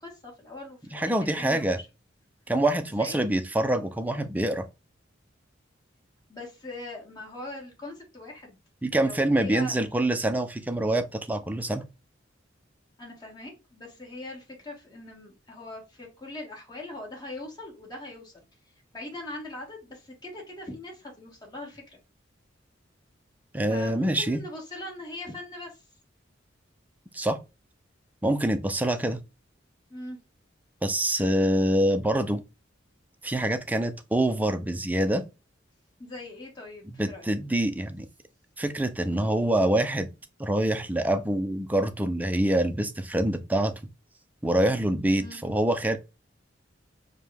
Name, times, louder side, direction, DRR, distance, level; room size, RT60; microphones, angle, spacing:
voice 1, 0.0-1.8 2.8-3.2 6.3-8.6 8.9-9.8 13.0-18.4 18.9-22.0 23.7-25.8 28.8-28.9 29.9-30.2 36.0-37.4 45.2-45.4, left 2 dB, 20° left, 1.5 m, -41 dB
voice 2, 0.9-1.8 2.5-4.7 8.8-11.9 23.5-24.4 27.1-27.4 28.2-29.2 30.8-32.4 33.2-35.2 37.0-38.1 38.6-40.1 40.4-43.7 44.4-46.0, right 1 dB, 10° right, 0.4 m, -25 dB
4.9 x 2.2 x 3.3 m
head